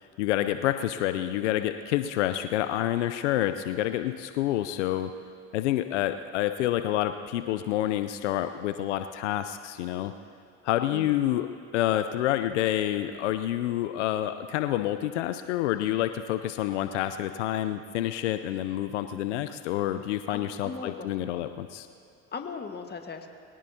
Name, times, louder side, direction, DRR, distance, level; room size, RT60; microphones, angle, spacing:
voice 1, 0.0-5.1 5.5-10.1 10.6-11.5 11.7-21.9, left 13 dB, 85° left, 10 dB, 0.6 m, -28 dB
voice 2, 20.3-21.1 22.3-23.3, left 5 dB, 30° left, 5 dB, 1.6 m, -38 dB
22.5 x 17.5 x 2.8 m, 2.4 s
hypercardioid pair, 65°, 35 cm